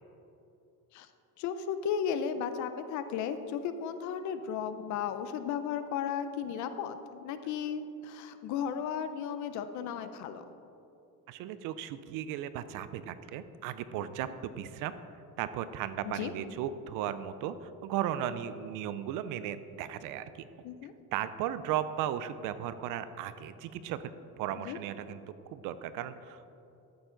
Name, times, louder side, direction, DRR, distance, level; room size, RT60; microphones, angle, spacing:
voice 1, 1.4-10.4 16.0-16.3 20.6-20.9 24.5-24.8, left 7 dB, 45° left, 10 dB, 0.5 m, -35 dB
voice 2, 11.3-14.9 15.4-20.5 21.1-24.1 24.4-26.5, right 10 dB, 55° right, 13 dB, 0.5 m, -36 dB
13.0 x 7.2 x 3.8 m, 2.8 s
cardioid pair, 165°, 40 cm